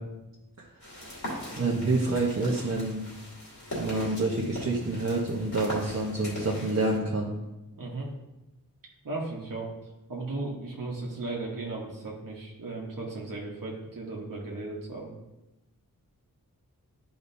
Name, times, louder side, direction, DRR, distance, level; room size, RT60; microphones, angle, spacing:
sound 1, 0.8-7.0, left 1 dB, 55° left, 2.7 m, -40 dB
voice 1, 1.5-3.0 3.8-7.3, right 2 dB, 50° right, -4 dB, 1.2 m, -27 dB
voice 2, 7.7-8.1 9.0-15.1, right 2 dB, 65° right, -3 dB, 1.4 m, -36 dB
11.0 x 5.0 x 2.8 m, 0.98 s
wide cardioid pair, 100°, 35 cm